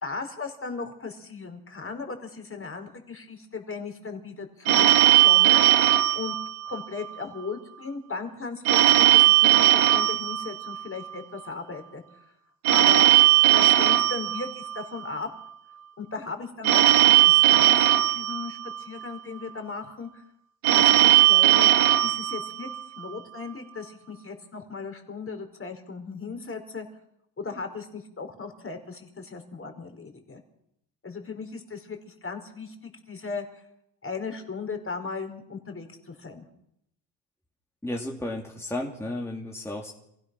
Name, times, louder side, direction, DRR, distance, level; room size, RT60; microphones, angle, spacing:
voice 1, 0.0-5.6 6.1-6.3 6.7-12.0 12.7-13.1 13.5-15.3 16.0-20.2 20.7-21.7 22.0-22.7 23.0-26.9 27.4-30.4 31.0-33.6 34.0-36.4, left 4 dB, 25° left, 6 dB, 4.6 m, -37 dB
Telephone, 4.6-7.1 8.6-11.1 12.6-15.1 16.6-19.1 20.6-23.1, right 14 dB, 75° right, 2.1 m, -19 dB
voice 2, 37.8-39.9, left 1 dB, 5° left, -1 dB, 3.0 m, -33 dB
27.5 x 16.5 x 6.2 m, 0.77 s
cardioid pair, 105°, 50 cm